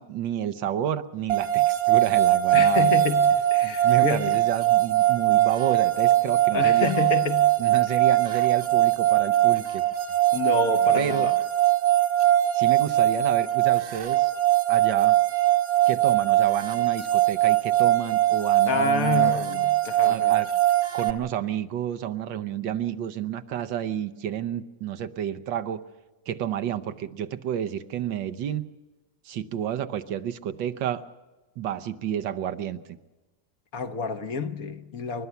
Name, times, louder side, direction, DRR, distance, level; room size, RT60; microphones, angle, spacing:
voice 1, 0.0-2.9 3.6-6.9 7.6-9.8 11.0-11.3 12.5-14.3 14.7-15.2 15.9-19.3 20.1-20.5 20.9-25.8 26.3-28.6 29.2-31.1 31.6-33.0, right 10 dB, 80° right, 1.5 m, -30 dB
sound 1, 1.3-21.1, right 13 dB, 55° right, 1.4 m, -21 dB
voice 2, 2.5-4.4 6.5-7.5 10.3-11.4 18.6-20.3 33.7-35.3, left 5 dB, 55° left, 1.3 m, -28 dB
29.5 x 12.5 x 7.0 m
omnidirectional pair, 2.0 m